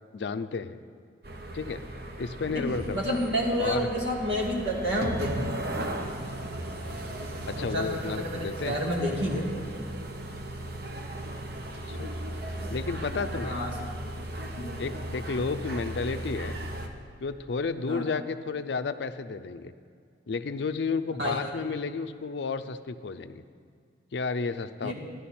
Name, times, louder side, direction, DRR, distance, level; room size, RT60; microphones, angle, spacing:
voice 1, 0.1-0.8 1.5-1.8 2.2-3.2 3.6-3.9 7.5-8.8 11.9-12.1 12.7-13.6 14.8-16.6 17.2-19.7 20.3-23.4 24.1-24.9, left 4 dB, 65° left, 10 dB, 0.4 m, -32 dB
sound 1, 1.2-16.9, right 1 dB, 55° right, 0.8 m, -36 dB
voice 2, 2.9-5.5 6.9-9.5 13.4-13.7 14.6-14.7 17.9-18.0 21.2-21.5 24.8-24.9, equal, 80° right, -2 dB, 2.2 m, -30 dB
12.5 x 11.0 x 4.3 m, 2.2 s
head